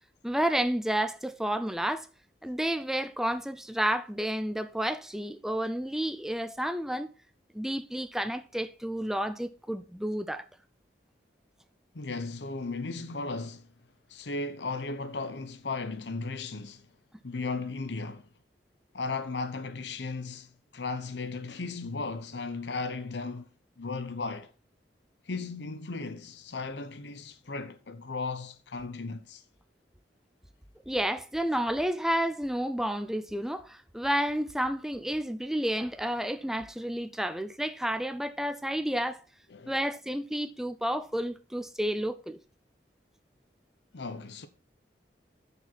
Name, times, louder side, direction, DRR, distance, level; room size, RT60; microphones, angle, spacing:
voice 1, 0.2-2.1 2.4-7.1 7.5-10.5 30.9-39.2 39.7-42.4, equal, 5° right, 0.4 m, -30 dB
voice 2, 11.9-13.7 14.1-16.8 17.2-18.2 18.9-23.5 23.8-24.5 25.3-29.4 39.5-39.7 43.9-44.5, left 3 dB, 80° left, 0.9 m, -36 dB
9.6 x 5.8 x 4.0 m
head